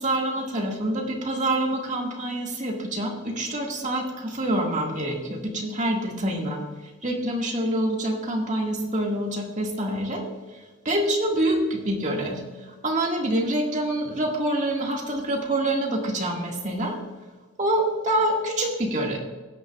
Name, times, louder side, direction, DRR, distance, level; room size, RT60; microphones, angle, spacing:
voice 1, 0.0-6.6 7.0-10.2 10.9-12.4 12.8-17.0 17.6-19.2, right 1 dB, 35° right, 0 dB, 1.8 m, -26 dB
16.5 x 9.0 x 2.3 m, 1.3 s
head